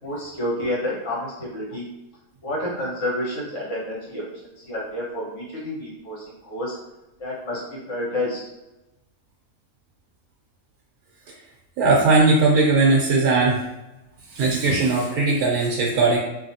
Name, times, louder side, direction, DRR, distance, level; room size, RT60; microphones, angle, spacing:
voice 1, 0.0-1.8 2.4-4.2 4.6-6.8 7.2-8.4, left 1 dB, 60° left, -7 dB, 1.5 m, -29 dB
voice 2, 11.8-13.6 14.3-16.2, right 3 dB, 85° right, -3 dB, 1.1 m, -18 dB
2.9 x 2.7 x 2.7 m, 0.98 s
omnidirectional pair, 1.5 m